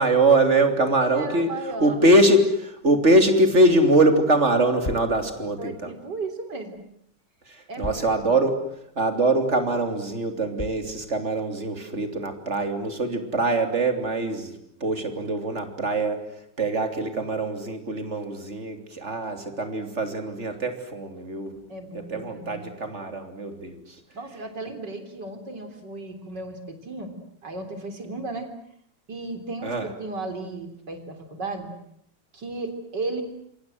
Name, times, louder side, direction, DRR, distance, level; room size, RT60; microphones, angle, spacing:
voice 1, 0.0-1.5 1.8-5.9 7.8-8.6 9.0-14.5 14.8-16.2 16.6-21.6 21.9-23.8 29.6-29.9, right 1 dB, 40° right, 6 dB, 3.4 m, -22 dB
voice 2, 1.0-2.1 5.6-6.8 7.7-8.5 21.7-22.7 24.1-27.1 27.4-28.5 29.1-31.7 32.3-33.2, right 3 dB, 70° right, 6 dB, 4.2 m, -35 dB
sound 1, 4.8-5.2 6.7-6.8 7.8-8.2 8.7-8.8 9.4-9.5 10.6-10.9, left 2 dB, 25° left, 1.7 m, -35 dB
27.5 x 25.0 x 7.8 m, 0.71 s
omnidirectional pair, 1.9 m